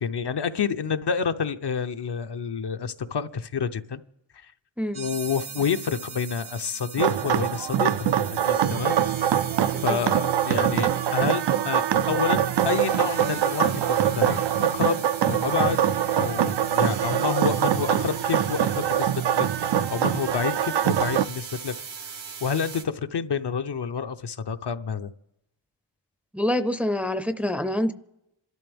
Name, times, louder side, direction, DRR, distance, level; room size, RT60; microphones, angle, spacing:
voice 1, 0.0-4.0 4.3-4.5 4.9-8.1 8.5-9.4 9.8-14.5 14.7-15.0 15.3-15.8 16.1-19.1 19.4-21.7 22.0-22.1 22.4-25.1, left 6 dB, 60° left, 0.7 m, -29 dB
sound 1, 4.9-22.8, right 6 dB, 85° right, 1.4 m, -39 dB
sound 2, 7.0-21.2, right 10 dB, 65° right, 0.5 m, -24 dB
voice 2, 9.7-10.1 26.3-27.9, left 1 dB, 5° right, 0.5 m, -26 dB
27.0 x 12.5 x 3.5 m
wide cardioid pair, 125°, 45 cm